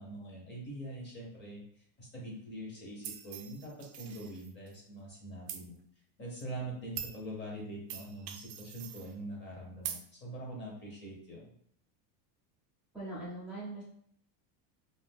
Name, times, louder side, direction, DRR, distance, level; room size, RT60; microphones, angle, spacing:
voice 1, 0.0-5.8 6.2-11.5, right 1 dB, 20° left, -3 dB, 0.8 m, -44 dB
sound 1, 3.0-4.7 5.5-5.6 6.4-6.5 7.0-7.2 7.9-9.1 9.8-10.0, right 10 dB, 60° right, 0.5 m, -43 dB
voice 2, 12.9-13.8, right 2 dB, 5° right, -9 dB, 0.5 m, -41 dB
2.6 x 2.4 x 3.5 m, 0.65 s
cardioid pair, 155°, 49 cm